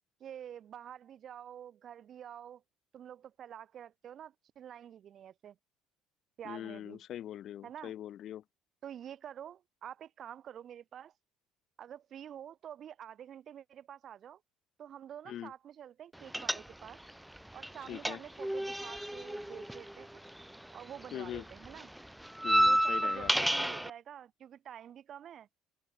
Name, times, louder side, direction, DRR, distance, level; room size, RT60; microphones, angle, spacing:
voice 1, 0.2-2.6 2.9-5.6 6.4-7.0 7.6-7.9 8.8-11.1 11.8-14.4 14.8-17.0 17.5-20.3 20.7-21.9 22.7-25.5, right 9 dB, 50° right, 4.3 m, -48 dB
voice 2, 6.4-8.4 15.3-15.5 17.9-18.2 21.1-21.4 22.4-23.3, left 11 dB, 50° left, 4.1 m, -42 dB
sound 1, 16.3-17.1 17.4-20.8 21.0-23.9, right 1 dB, 5° right, 0.4 m, -31 dB
figure-of-eight pair, 55°, 0 cm